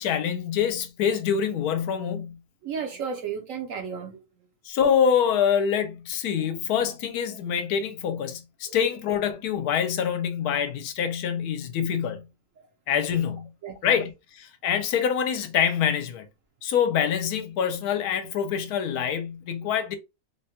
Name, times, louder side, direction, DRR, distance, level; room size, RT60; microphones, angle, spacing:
voice 1, 0.0-2.4 4.7-12.3 12.9-13.5 13.8-16.3 16.6-20.0, left 8 dB, 75° left, 1.1 m, -25 dB
voice 2, 2.6-4.2 6.4-6.5 8.7-8.8 13.6-13.8 19.6-19.7, right 6 dB, 65° right, 0.9 m, -33 dB
3.5 x 2.1 x 2.8 m
omnidirectional pair, 1.7 m